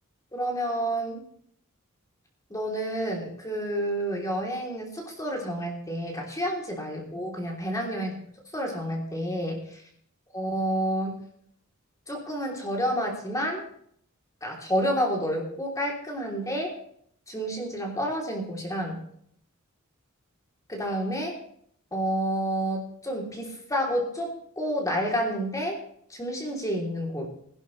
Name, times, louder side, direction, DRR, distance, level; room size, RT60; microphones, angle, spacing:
voice 1, 0.3-1.2 2.5-8.1 8.5-9.8 10.3-11.2 12.1-13.6 14.4-16.7 17.3-19.0 20.7-21.3 21.9-25.8 26.1-27.3, equal, 15° left, -1 dB, 3.1 m, -29 dB
21.5 x 11.0 x 3.2 m, 0.64 s
head